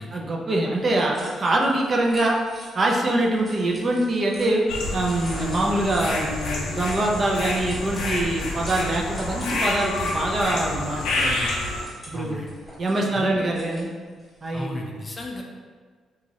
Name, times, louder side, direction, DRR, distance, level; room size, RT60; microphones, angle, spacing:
voice 1, 0.1-2.4 2.7-4.6 4.9-11.5 12.1-12.4 12.8-13.9 14.4-14.8, right 1 dB, 40° right, -1 dB, 0.5 m, -24 dB
sound 1, 0.7-14.6, equal, 10° right, 1.1 m, -45 dB
sound 2, 4.7-11.8, left 2 dB, 90° left, 0.5 m, -28 dB
voice 2, 12.1-12.5 13.1-13.5 14.5-15.4, left 1 dB, 25° left, 1 dB, 0.4 m, -34 dB
3.0 x 2.4 x 2.8 m, 1.5 s
cardioid pair, 90°, 0 cm